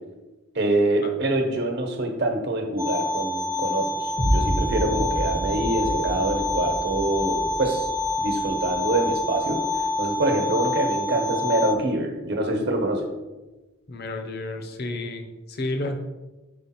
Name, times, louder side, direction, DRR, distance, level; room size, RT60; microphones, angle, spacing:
voice 1, 0.5-7.9 8.2-9.6 10.0-13.0, right 2 dB, 50° right, 3 dB, 1.1 m, -25 dB
sound 1, 2.8-11.7, left 2 dB, 15° right, 0.3 m, -27 dB
sound 2, 4.2-10.2, right 1 dB, 30° right, 0.7 m, -30 dB
voice 2, 13.9-15.9, left 2 dB, 50° left, 5 dB, 0.7 m, -31 dB
5.1 x 5.1 x 4.3 m, 1.1 s
head